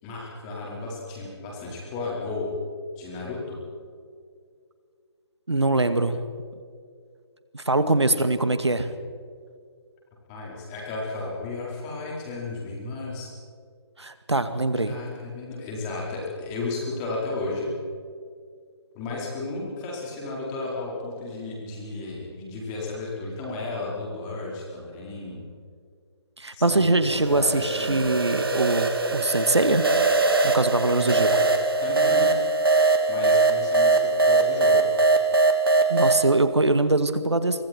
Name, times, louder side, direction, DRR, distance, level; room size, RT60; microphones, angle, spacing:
voice 1, 0.0-2.5 3.0-3.6 8.1-8.2 10.3-13.3 14.8-17.7 18.9-25.4 26.5-28.1 31.1-31.2 31.8-32.3 33.1-34.8, left 3 dB, 15° left, -3 dB, 4.5 m, -33 dB
voice 2, 5.5-6.2 7.5-8.9 14.0-15.0 26.4-29.9 30.4-31.3 35.9-37.7, right 2 dB, 70° right, 10 dB, 2.0 m, -23 dB
sound 1, 27.1-36.2, right 3 dB, 55° right, 2.8 m, -21 dB
28.0 x 24.5 x 4.5 m, 2.1 s
figure-of-eight pair, 150°, 15 cm